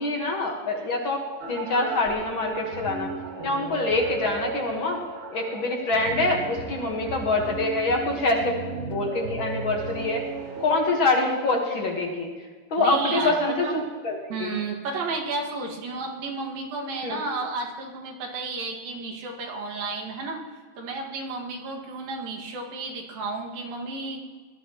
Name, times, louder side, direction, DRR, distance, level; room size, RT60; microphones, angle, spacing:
voice 1, 0.0-3.1 3.4-5.0 5.3-8.5 8.9-10.2 10.6-12.3 12.7-14.5 17.0-17.2, left 2 dB, 50° left, 1 dB, 1.7 m, -25 dB
sound 1, 1.4-10.8, right 4 dB, 55° right, 3.2 m, -35 dB
voice 2, 12.8-13.8 14.3-20.4 20.8-24.2, right 3 dB, 90° right, 0 dB, 3.8 m, -32 dB
19.5 x 13.5 x 3.0 m, 1.5 s
omnidirectional pair, 3.9 m